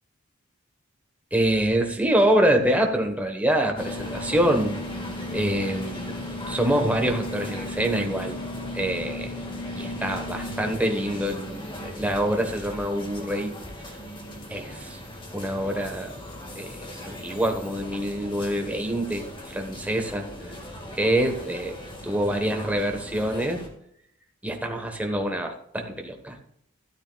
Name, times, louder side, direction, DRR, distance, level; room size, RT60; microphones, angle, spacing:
voice 1, 1.3-4.7 5.3-6.2 6.5-8.4 8.7-9.3 9.8-13.5 14.5-15.0 15.3-16.2 16.6-20.5 21.0-21.8 22.0-23.6 24.4-26.4, right 1 dB, 5° right, 3 dB, 1.1 m, -25 dB
sound 1, 3.8-23.7, left 1 dB, 25° left, 1.7 m, -37 dB
13.0 x 12.5 x 2.3 m, 0.69 s
head